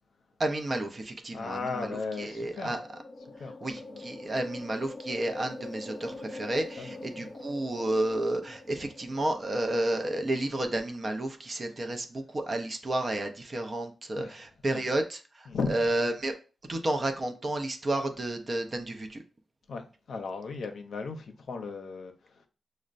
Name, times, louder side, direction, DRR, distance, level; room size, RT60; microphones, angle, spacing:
voice 1, 0.4-2.8 3.6-16.3 16.7-19.2, right 1 dB, 35° right, 0.5 m, -31 dB
voice 2, 1.3-2.8 3.4-4.0 6.8-7.3 14.2-14.4 14.7-14.8 15.5-15.8 19.7-22.5, left 4 dB, 70° left, 0.6 m, -36 dB
sound 1, 2.2-9.8, left 2 dB, 25° left, 0.5 m, -44 dB
6.2 x 2.1 x 2.4 m
wide cardioid pair, 130°, 0 cm